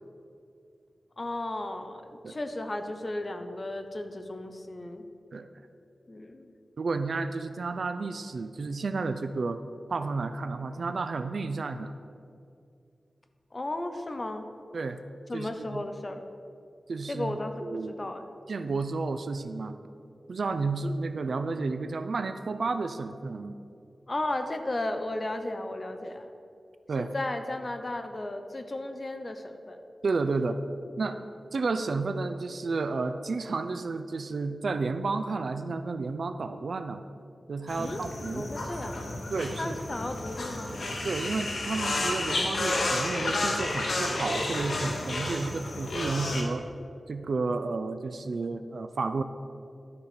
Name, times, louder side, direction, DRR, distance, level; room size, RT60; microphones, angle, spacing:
voice 1, 1.2-5.1 6.1-6.5 13.5-14.5 15.3-16.2 17.1-18.3 24.1-26.3 27.0-29.8 37.8-38.0 38.3-39.0 39.5-40.7, left 1 dB, 35° left, 7 dB, 0.7 m, -34 dB
voice 2, 6.8-9.6 9.9-11.9 14.7-15.0 15.3-15.8 16.9-17.4 17.6-18.1 18.5-19.8 20.3-23.6 26.9-27.1 30.0-30.6 31.0-31.2 31.5-37.0 37.5-38.5 39.3-39.8 41.0-46.7 47.1-49.2, right 3 dB, 65° right, 9 dB, 0.4 m, -31 dB
sound 1, 37.7-46.4, left 2 dB, 65° left, 1.4 m, -31 dB
12.0 x 4.3 x 6.8 m, 2.4 s
wide cardioid pair, 100°, 0 cm